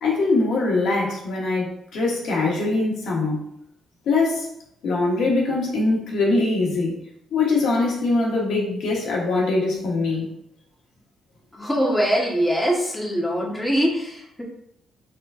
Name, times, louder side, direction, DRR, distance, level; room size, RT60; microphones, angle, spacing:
voice 1, 0.0-3.4 4.0-4.5 4.8-6.9 7.3-10.3, left 3 dB, 70° left, -3 dB, 1.2 m, -22 dB
voice 2, 11.6-14.4, equal, 5° left, -4 dB, 1.4 m, -22 dB
4.4 x 3.7 x 2.6 m, 0.74 s
cardioid pair, 90°, 0 cm